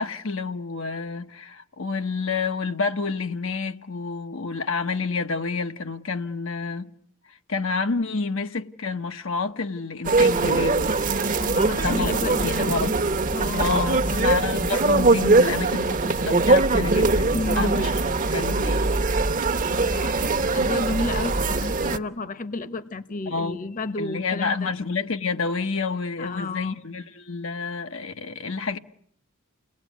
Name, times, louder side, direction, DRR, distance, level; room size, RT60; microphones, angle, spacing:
voice 1, 0.0-6.9 7.3-10.8 11.8-12.9 13.6-18.9 23.3-23.6 24.0-28.8, left 4 dB, 70° left, 1.0 m, -29 dB
sound 1, 10.0-22.0, right 3 dB, 40° right, 1.0 m, -22 dB
voice 2, 11.4-13.0 13.3-14.3 17.3-17.8 19.7-20.2 20.5-24.7 26.2-26.8, left 2 dB, 40° left, 1.1 m, -31 dB
29.5 x 19.5 x 9.3 m
head